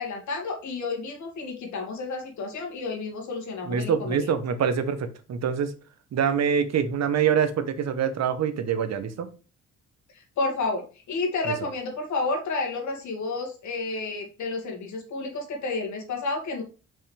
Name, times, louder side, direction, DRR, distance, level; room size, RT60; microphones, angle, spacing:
voice 1, 0.0-4.3 10.4-16.6, left 3 dB, 70° left, 2 dB, 2.3 m, -31 dB
voice 2, 3.6-5.7 6.1-9.3 11.4-11.5, right 7 dB, 60° right, 10 dB, 1.0 m, -25 dB
5.5 x 5.5 x 3.4 m, 0.34 s
cardioid pair, 90°, 30 cm